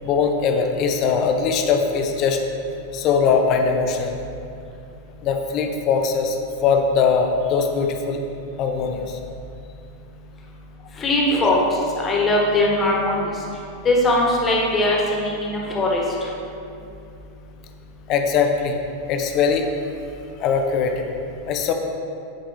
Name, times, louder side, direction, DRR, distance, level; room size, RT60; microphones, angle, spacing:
voice 1, 0.0-2.4 2.9-4.2 5.2-8.2 8.6-9.2 11.4-11.5 18.1-18.8 19.1-19.7 20.4-21.1 21.5-21.7, left 5 dB, 35° left, 4 dB, 0.7 m, -21 dB
voice 2, 10.9-13.4 13.8-16.3, left 1 dB, 20° left, -2 dB, 1.5 m, -20 dB
10.0 x 5.0 x 3.4 m, 2.6 s
figure-of-eight pair, 90°, 0 cm